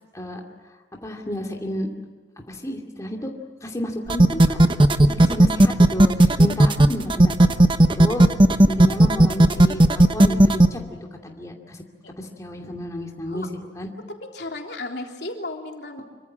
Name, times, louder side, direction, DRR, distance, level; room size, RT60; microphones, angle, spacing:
voice 1, 1.0-1.9 2.5-3.3 3.6-4.6 5.0-7.3 7.8-8.3 8.7-11.0 11.2-11.8 12.2-13.5 13.8-13.9, left 1 dB, 20° left, 0 dB, 2.5 m, -31 dB
sound 1, 4.1-10.7, right 1 dB, 30° right, 1.0 m, -14 dB
voice 2, 14.3-16.0, left 2 dB, 65° left, 2 dB, 3.4 m, -34 dB
26.5 x 24.5 x 7.5 m, 1.4 s
head